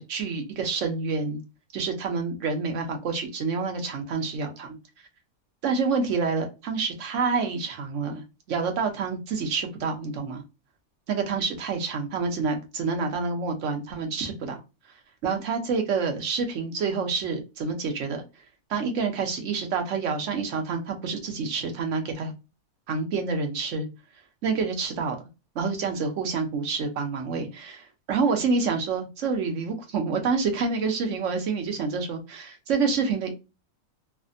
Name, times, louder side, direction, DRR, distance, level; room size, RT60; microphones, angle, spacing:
voice 1, 0.0-1.4 1.7-4.8 5.6-10.4 11.1-14.6 15.2-18.2 18.7-22.3 22.9-23.9 24.4-25.2 25.5-33.3, right 4 dB, 60° right, 4 dB, 1.0 m, -28 dB
3.2 x 2.1 x 2.5 m, 0.27 s
omnidirectional pair, 1.6 m